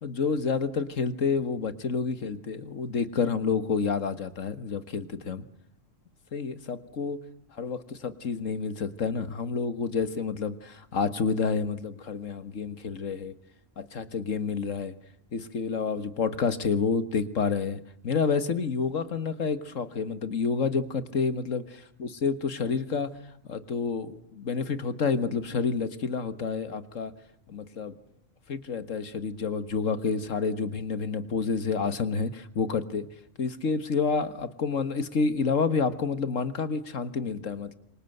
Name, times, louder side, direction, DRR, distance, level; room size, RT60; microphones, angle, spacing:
voice 1, 0.0-5.5 6.3-7.2 7.6-13.3 13.8-15.0 15.3-23.1 23.5-27.1 27.5-28.0 28.5-33.1 33.4-37.7, left 5 dB, 75° left, 12 dB, 1.9 m, -29 dB
27.0 x 25.0 x 8.0 m, 0.69 s
omnidirectional pair, 1.3 m